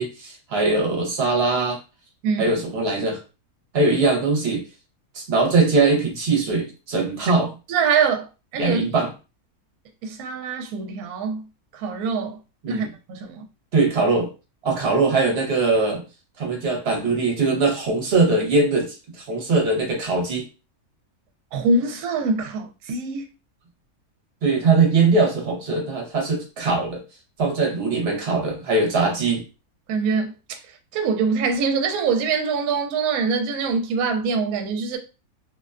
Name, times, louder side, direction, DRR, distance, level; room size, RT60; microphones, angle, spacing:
voice 1, 0.0-1.8 2.4-3.2 3.7-4.6 5.1-7.5 8.6-9.1 12.6-12.9 13.7-14.3 14.6-16.0 16.4-20.5 24.4-27.0 27.4-29.4, right 3 dB, 50° right, 0.9 m, -21 dB
voice 2, 2.2-2.5 7.7-8.3 8.5-8.9 10.0-11.4 11.7-12.4 12.7-13.4 21.5-23.3 29.9-30.6 30.9-35.0, right 4 dB, 75° right, 1.0 m, -24 dB
2.6 x 2.2 x 2.4 m
omnidirectional pair, 1.6 m